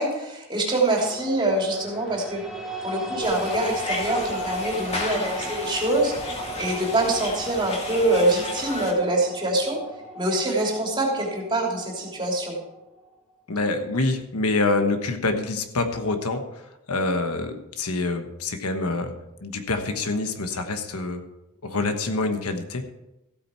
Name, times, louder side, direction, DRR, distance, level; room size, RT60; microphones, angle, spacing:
voice 1, 0.0-2.4 2.8-9.8 10.1-12.6, right 2 dB, 20° right, -2 dB, 3.2 m, -25 dB
sound 1, 0.9-13.1, equal, ahead, 1.9 m, -36 dB
sound 2, 3.2-8.9, left 2 dB, 30° left, 2.4 m, -33 dB
voice 2, 13.5-19.1 19.4-21.2 21.6-22.9, left 2 dB, 80° left, 7 dB, 1.3 m, -26 dB
15.0 x 8.8 x 4.5 m, 0.92 s
head